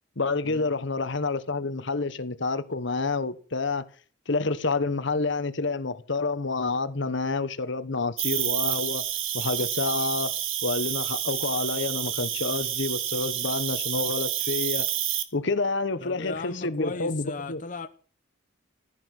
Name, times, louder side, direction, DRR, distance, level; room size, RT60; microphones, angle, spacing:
voice 1, 0.2-3.9 4.3-9.1 9.3-10.4 10.6-14.9 15.3-17.6, left 3 dB, 60° left, 1.1 m, -28 dB
Cricket, 8.2-15.2, right 11 dB, 75° right, 1.7 m, -29 dB
voice 2, 16.0-17.9, left 3 dB, 40° left, 0.9 m, -36 dB
15.0 x 11.5 x 6.5 m
head